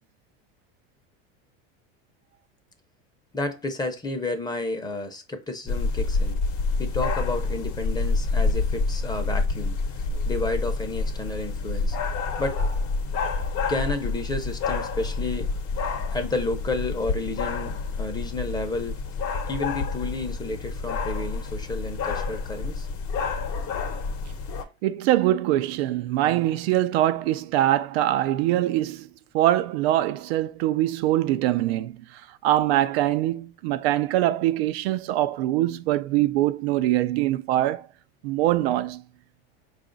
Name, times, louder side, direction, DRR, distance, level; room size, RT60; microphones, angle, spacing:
voice 1, 3.3-6.4 6.8-9.8 10.2-12.0 12.4-12.6 13.7-15.5 16.1-19.0 19.5-22.9, left 2 dB, 15° left, 0.7 m, -31 dB
sound 1, 5.7-24.6, left 4 dB, 50° left, 0.9 m, -28 dB
voice 2, 24.8-29.1 29.3-32.0 32.4-37.8 38.2-39.0, right 14 dB, 80° right, 0.5 m, -23 dB
4.8 x 2.5 x 3.8 m
supercardioid pair, 130°, 30 cm